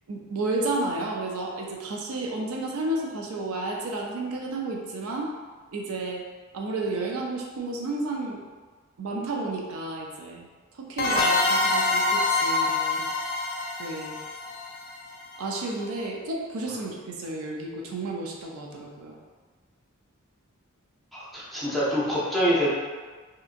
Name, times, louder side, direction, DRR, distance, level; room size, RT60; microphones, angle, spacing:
voice 1, 0.1-5.3 5.7-6.2 6.5-8.4 9.0-10.5 10.7-13.1 13.8-14.2 15.4-19.2, right 2 dB, 90° right, -1 dB, 0.5 m, -32 dB
sound 1, 11.0-15.5, left 2 dB, 45° left, 0.4 m, -25 dB
voice 2, 21.1-22.7, equal, ahead, -9 dB, 0.6 m, -25 dB
2.7 x 2.5 x 2.4 m, 1.4 s
head